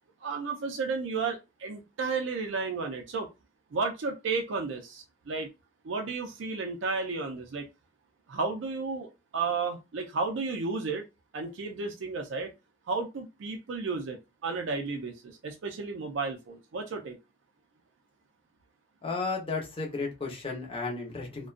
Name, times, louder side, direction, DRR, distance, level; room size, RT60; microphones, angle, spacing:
voice 1, 0.2-3.3 3.7-5.5 5.8-7.7 8.3-11.0 11.3-12.5 12.9-17.2, right 4 dB, 70° right, 0.4 m, -33 dB
voice 2, 19.0-21.5, left 3 dB, 30° left, 0.8 m, -33 dB
2.4 x 2.2 x 2.4 m
head